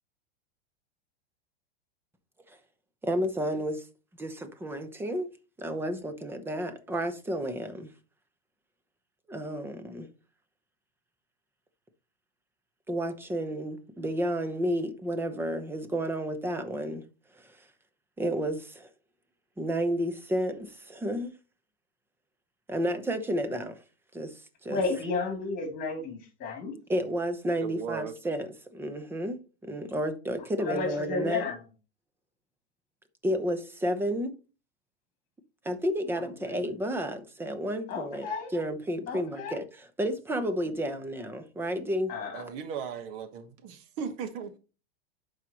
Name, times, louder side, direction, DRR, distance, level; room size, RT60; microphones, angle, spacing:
voice 1, 3.0-3.9 4.2-5.3 5.6-7.9 9.3-10.1 12.9-17.0 17.4-17.6 18.2-18.9 19.6-21.3 22.7-23.8 24.1-24.8 26.9-31.4 33.2-34.3 35.6-39.6 40.0-42.1, equal, 5° right, 0.7 m, -31 dB
voice 2, 24.7-26.7 30.6-31.6 37.9-38.5 39.1-39.6 42.1-42.4, left 4 dB, 25° left, 3.0 m, -32 dB
voice 3, 27.6-28.1 42.3-44.6, right 6 dB, 45° right, 1.3 m, -37 dB
11.0 x 4.8 x 3.0 m
supercardioid pair, 145°, 31 cm